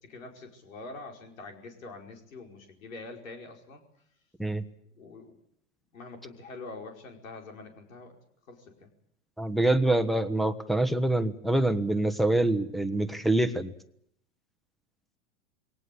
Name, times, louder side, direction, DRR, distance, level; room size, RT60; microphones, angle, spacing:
voice 1, 0.0-3.8 5.0-5.4 5.9-8.2 8.5-8.9, left 3 dB, 90° left, 3 dB, 5.1 m, -45 dB
voice 2, 9.4-13.7, right 1 dB, ahead, 7 dB, 1.3 m, -25 dB
21.5 x 18.5 x 8.5 m, 0.71 s
hypercardioid pair, 105°, 39 cm